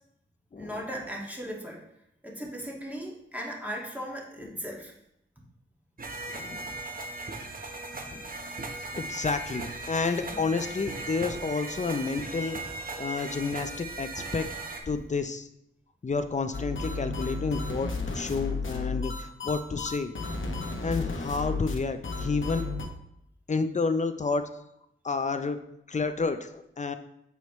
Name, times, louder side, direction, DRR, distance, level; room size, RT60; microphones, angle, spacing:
voice 1, 0.6-1.8 2.2-4.9 10.3-10.5, equal, 5° right, -3 dB, 1.7 m, -37 dB
sound 1, 6.0-14.8, right 2 dB, 40° right, 0.9 m, -38 dB
voice 2, 6.3-6.7 8.1-8.3 8.9-12.6 13.0-14.5 14.9-15.5 16.0-20.2 20.8-22.6 23.5-24.5 25.0-25.6 25.9-27.0, left 4 dB, 35° left, 9 dB, 0.6 m, -30 dB
sound 2, 16.5-22.9, left 3 dB, 70° left, 0.9 m, -33 dB
6.9 x 4.5 x 3.1 m, 0.78 s
cardioid pair, 55°, 21 cm